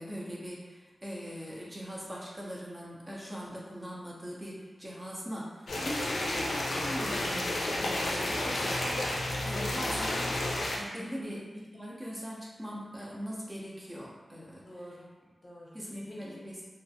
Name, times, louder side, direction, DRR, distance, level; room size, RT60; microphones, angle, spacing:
voice 1, 0.0-14.7 15.7-16.7, equal, 20° right, -5 dB, 0.5 m, -41 dB
sound 1, 5.7-10.8, left 1 dB, 85° left, 0.4 m, -31 dB
voice 2, 10.9-11.4 14.6-16.4, equal, 40° left, -6 dB, 0.6 m, -49 dB
2.4 x 2.1 x 2.7 m, 1.3 s
wide cardioid pair, 70°, 0 cm